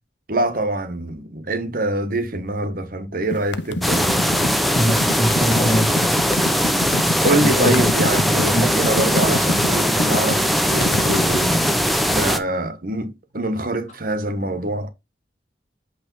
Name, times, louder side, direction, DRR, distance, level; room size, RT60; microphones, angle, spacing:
voice 1, 0.3-4.1 7.2-11.8 12.1-14.9, right 1 dB, 50° right, 1.1 m, -24 dB
sound 1, 3.3-11.4, left 3 dB, 75° left, 0.6 m, -27 dB
sound 2, 3.8-12.4, equal, ahead, 0.8 m, -20 dB
voice 2, 4.8-6.2 7.4-7.9 8.5-8.7, equal, 40° left, 2.4 m, -22 dB
8.4 x 3.4 x 5.4 m
head